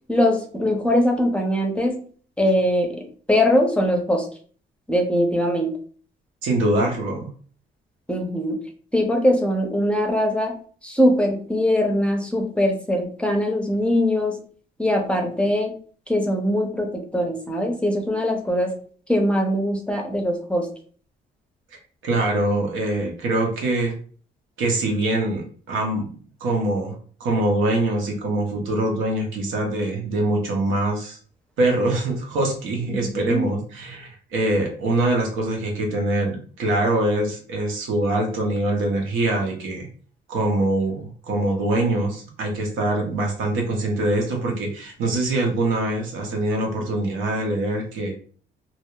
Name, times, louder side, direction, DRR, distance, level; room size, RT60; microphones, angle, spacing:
voice 1, 0.1-2.0 2.4-4.3 4.9-5.8 8.1-8.6 8.9-10.6 10.8-14.4 14.8-15.7 16.1-18.7 19.1-20.7 32.9-33.5, left 1 dB, 5° left, 3 dB, 0.5 m, -21 dB
voice 2, 6.4-7.3 22.0-23.9 24.6-26.1 26.4-31.2 31.6-39.9 40.3-48.1, right 2 dB, 85° right, 1 dB, 0.8 m, -23 dB
2.7 x 2.0 x 2.2 m, 0.44 s
cardioid pair, 90°, 20 cm